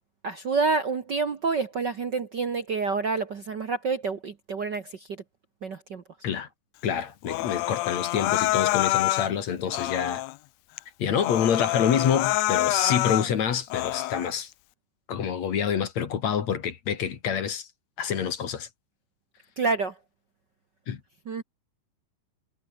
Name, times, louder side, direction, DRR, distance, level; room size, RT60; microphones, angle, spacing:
voice 1, 0.2-5.2 5.6-6.0 19.6-20.0 21.2-21.4, right 4 dB, 45° right, 1.5 m, -28 dB
voice 2, 6.8-10.2 11.0-14.5 15.1-17.7 18.0-18.7 20.9-21.0, left 8 dB, 60° left, 3.3 m, -27 dB
Human voice, 7.2-9.3 9.7-10.4 10.8-10.9 11.2-13.3 13.7-14.3, left 18 dB, 80° left, 1.6 m, -26 dB
omnidirectional pair, 3.6 m